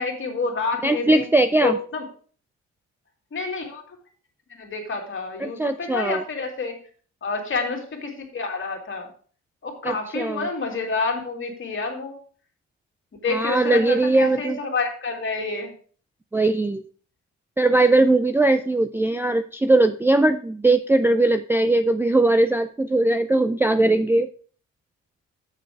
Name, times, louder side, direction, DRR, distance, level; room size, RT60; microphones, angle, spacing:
voice 1, 0.0-1.2 1.6-2.0 3.3-3.8 4.5-6.8 7.2-9.1 9.6-12.2 13.2-15.7, left 4 dB, 40° left, 2 dB, 2.4 m, -28 dB
voice 2, 0.8-1.8 5.4-6.2 9.8-10.5 13.3-14.6 16.3-16.8 17.6-24.3, right 2 dB, 10° right, 8 dB, 0.4 m, -20 dB
6.7 x 6.5 x 4.6 m, 0.42 s
cardioid pair, 90°, 30 cm